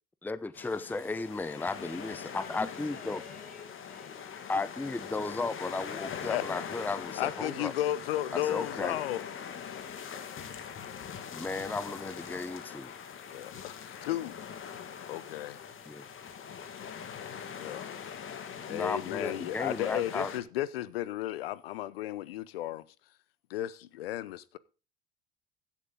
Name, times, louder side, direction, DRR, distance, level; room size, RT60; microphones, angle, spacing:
voice 1, 0.2-3.2 4.5-7.7 8.3-9.0 11.3-12.9 15.9-16.0 18.7-20.3, left 3 dB, 5° left, 0.6 m, -35 dB
sound 1, 0.5-20.4, left 7 dB, 45° left, 1.9 m, -42 dB
voice 2, 1.9-5.1, left 4 dB, 30° left, 4.9 m, -53 dB
voice 3, 7.2-9.2 13.3-14.4 15.1-15.6 17.6-18.1 18.6-22.8 23.5-24.6, left 13 dB, 85° left, 0.7 m, -34 dB
16.0 x 7.3 x 3.8 m
hypercardioid pair, 65°, 29 cm